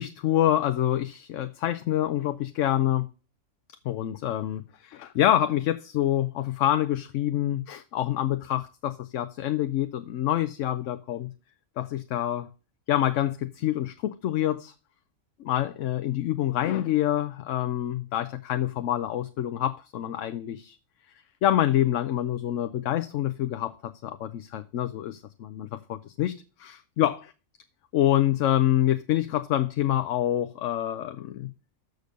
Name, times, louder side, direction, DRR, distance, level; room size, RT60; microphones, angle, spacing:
voice 1, 0.0-3.1 3.8-11.3 11.8-12.5 12.9-14.7 15.4-20.8 21.4-23.7 24.0-27.3 27.9-31.5, left 12 dB, 75° left, 0.9 m, -26 dB
6.7 x 6.6 x 5.1 m
omnidirectional pair, 1.3 m